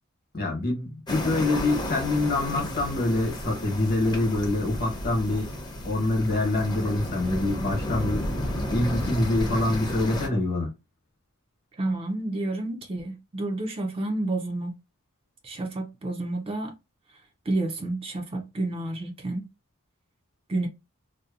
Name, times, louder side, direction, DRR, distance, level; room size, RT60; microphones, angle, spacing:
voice 1, 0.3-5.5 5.8-8.3 8.7-10.7, left 2 dB, 45° left, 1.0 m, -25 dB
sound 1, 1.1-10.3, left 1 dB, 20° left, 0.6 m, -32 dB
voice 2, 11.8-14.8 15.4-16.7 17.5-19.5 20.5-20.7, right 2 dB, 25° right, 0.4 m, -30 dB
2.7 x 2.1 x 2.4 m
head